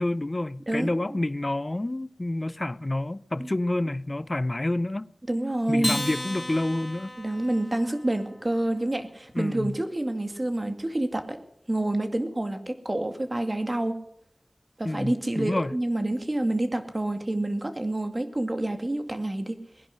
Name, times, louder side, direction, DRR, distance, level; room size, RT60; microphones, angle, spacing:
voice 1, 0.0-5.1 5.7-7.1 9.3-9.8 14.8-15.7, left 1 dB, 40° left, 0.6 m, -28 dB
voice 2, 0.7-1.2 3.4-3.5 5.3-6.0 7.2-11.4 11.7-14.0 14.8-19.6, right 1 dB, 35° right, 2.2 m, -28 dB
Acoustic guitar, 5.8-8.5, left 1 dB, 15° left, 4.1 m, -34 dB
20.0 x 11.0 x 6.5 m
wide cardioid pair, 55°, 0 cm